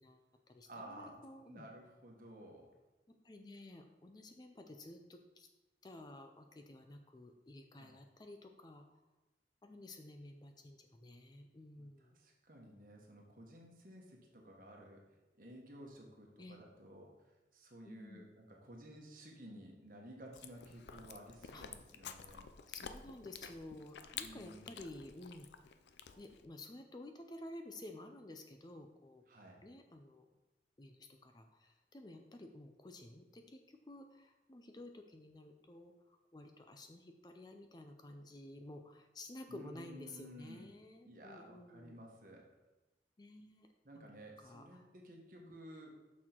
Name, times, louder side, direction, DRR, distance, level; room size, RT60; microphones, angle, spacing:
voice 1, 0.0-1.6 3.1-5.5 5.8-8.9 9.6-12.2 16.4-16.6 17.8-18.3 21.5-21.6 22.7-25.5 26.2-29.2 29.6-30.3 30.8-42.0 43.2-43.7 43.9-44.1 44.4-44.9 45.4-45.6, left 1 dB, 25° left, 5 dB, 0.4 m, -53 dB
voice 2, 0.7-1.2 1.5-2.7 7.7-7.9 12.1-22.4 24.2-24.7 29.3-29.6 39.5-40.7 41.0-42.5 43.8-45.9, right 1 dB, 50° right, 0 dB, 1.3 m, -54 dB
Chewing mastication, 20.3-26.5, left 7 dB, 75° left, 0.5 m, -51 dB
6.3 x 6.1 x 4.5 m, 1.1 s
head